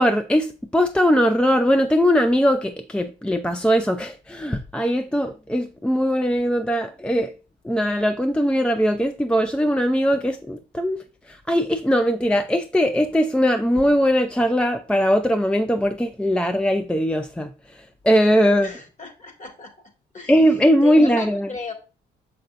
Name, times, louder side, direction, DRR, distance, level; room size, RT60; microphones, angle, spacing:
voice 1, 0.0-7.3 7.6-11.0 11.3-18.7 20.3-21.5, equal, 5° left, 0.4 m, -20 dB
voice 2, 18.6-19.7 20.1-20.3 20.8-21.7, left 4 dB, 40° left, 2.0 m, -35 dB
6.6 x 5.8 x 2.5 m
cardioid pair, 90°, 20 cm